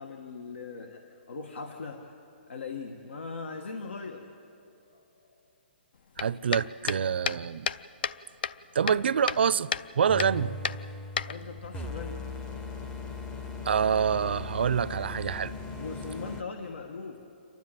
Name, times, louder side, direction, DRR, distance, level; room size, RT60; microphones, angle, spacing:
voice 1, 0.0-2.1 2.5-4.3 4.9-5.0 11.3-12.2 15.8-17.2, left 4 dB, 85° left, 1.5 m, -40 dB
sound 1, 6.2-8.2 8.4-9.4 9.7-9.9 10.2-10.3 10.7-11.7, left 7 dB, 60° left, 0.5 m, -32 dB
voice 2, 6.2-7.7 8.7-9.7 10.0-10.6 13.7-15.5, right 7 dB, 65° right, 0.5 m, -26 dB
sound 2, 10.1-16.4, left 3 dB, 10° left, 0.6 m, -39 dB
28.5 x 12.5 x 8.9 m
hypercardioid pair, 170°, 6 cm